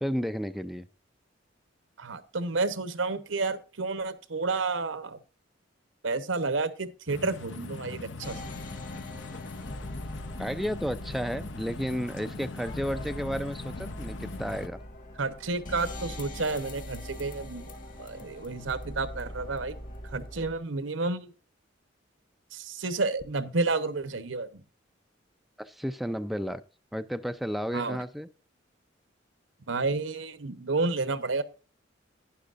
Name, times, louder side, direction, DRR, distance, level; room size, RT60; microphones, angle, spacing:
voice 1, 0.0-0.9 10.4-14.8 25.6-26.6 26.9-28.3, equal, ahead, 10 dB, 0.4 m, -32 dB
voice 2, 2.0-5.2 6.0-8.4 15.2-17.7 18.0-19.7 20.1-21.3 22.5-24.5 27.7-28.0 29.7-31.4, right 3 dB, 80° right, 13 dB, 1.0 m, -30 dB
sound 1, 7.1-14.7, left 3 dB, 70° left, 0.8 m, -41 dB
sound 2, 8.2-20.6, left 1 dB, 45° left, 2.0 m, -42 dB
11.5 x 10.0 x 2.5 m, 0.35 s
head